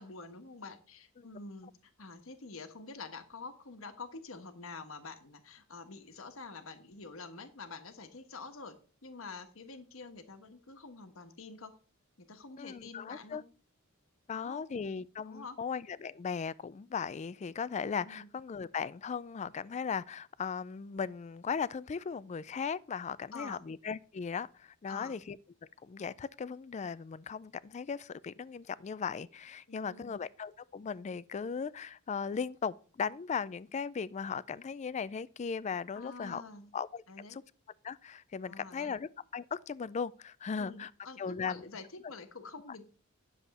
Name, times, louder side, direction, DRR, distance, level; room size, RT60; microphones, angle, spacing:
voice 1, 0.0-11.8 12.2-13.5 14.3-14.6 15.2-15.6 18.0-18.3 23.3-23.6 24.9-25.2 29.7-30.2 35.9-36.7 37.1-37.4 38.4-38.9 40.6-42.9, left 4 dB, 70° left, 1.3 m, -47 dB
voice 2, 12.6-13.4 14.3-25.4 25.8-36.4 36.7-37.4 37.8-40.9 41.2-41.7, left 6 dB, 35° left, 0.3 m, -37 dB
10.5 x 7.1 x 4.2 m
head